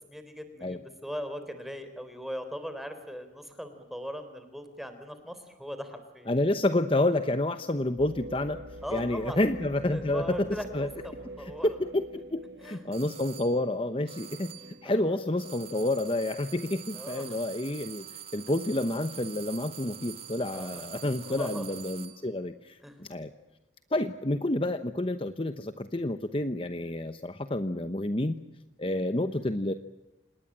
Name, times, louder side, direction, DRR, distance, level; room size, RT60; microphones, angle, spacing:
voice 1, 0.1-6.3 8.8-9.4 9.9-11.8 12.6-12.8 14.8-15.2 16.9-17.4 20.5-21.7 22.8-23.0 29.1-29.5, equal, ahead, 9 dB, 3.7 m, -40 dB
voice 2, 6.3-8.6 8.9-10.9 11.6-14.5 14.8-23.3 23.9-28.3 28.8-29.7, left 1 dB, 30° left, 10 dB, 0.9 m, -29 dB
sound 1, 8.0-17.9 18.4-18.5 19.1-19.5, right 1 dB, 65° right, 1.4 m, -47 dB
sound 2, 12.9-13.6 14.1-14.8 15.4-22.2, right 10 dB, 35° right, 2.6 m, -45 dB
27.5 x 20.0 x 8.8 m, 1.0 s
head